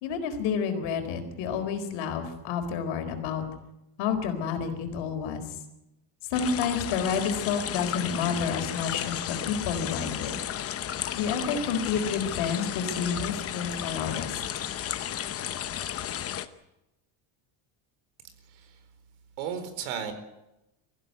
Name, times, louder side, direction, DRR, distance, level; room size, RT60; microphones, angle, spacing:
voice 1, 0.0-3.4 4.0-5.6 6.3-10.4 11.1-14.4, left 6 dB, 60° left, 6 dB, 4.4 m, -30 dB
sound 1, 6.3-16.5, left 10 dB, 30° left, 0.9 m, -33 dB
voice 2, 18.5-18.8 19.4-20.1, right 8 dB, 80° right, 9 dB, 4.5 m, -34 dB
24.0 x 15.0 x 9.5 m, 0.91 s
cardioid pair, 165°, 50 cm